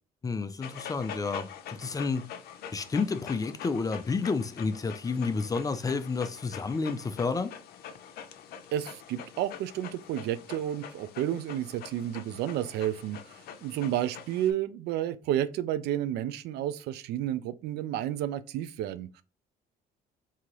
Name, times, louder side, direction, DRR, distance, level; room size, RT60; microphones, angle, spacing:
voice 1, 0.2-2.3 2.7-7.5, left 4 dB, 20° left, 0.4 m, -30 dB
Dog, 0.6-14.5, left 8 dB, 65° left, 0.6 m, -45 dB
voice 2, 8.7-13.2 13.6-19.2, right 11 dB, 75° right, 0.4 m, -31 dB
3.7 x 2.8 x 3.0 m
cardioid pair, 110°, 17 cm